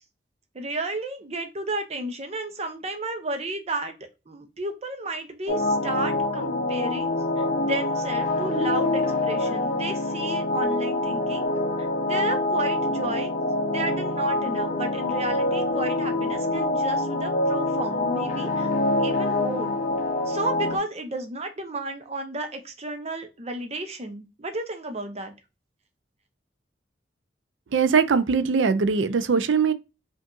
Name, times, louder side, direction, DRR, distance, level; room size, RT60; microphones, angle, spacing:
voice 1, 0.5-3.9 4.3-7.1 7.4-11.5 11.8-13.3 13.7-18.7 19.0-19.7 20.3-25.3, right 2 dB, 35° right, 0.8 m, -32 dB
sound 1, 5.5-20.8, left 2 dB, 45° left, 0.7 m, -25 dB
voice 2, 27.7-29.7, right 5 dB, 85° right, 0.4 m, -21 dB
5.1 x 2.5 x 2.4 m
head